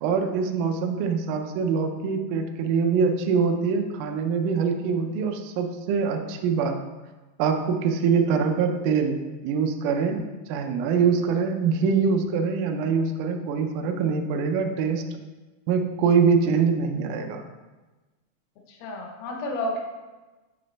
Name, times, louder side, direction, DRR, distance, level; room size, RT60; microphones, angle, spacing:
voice 1, 0.0-6.8 7.4-9.2 9.4-10.2 10.5-15.0 15.7-17.4, right 5 dB, 85° right, 4 dB, 1.8 m, -24 dB
voice 2, 18.7-19.8, left 1 dB, 80° left, 1 dB, 2.7 m, -31 dB
8.4 x 3.2 x 4.0 m, 1.2 s
omnidirectional pair, 4.4 m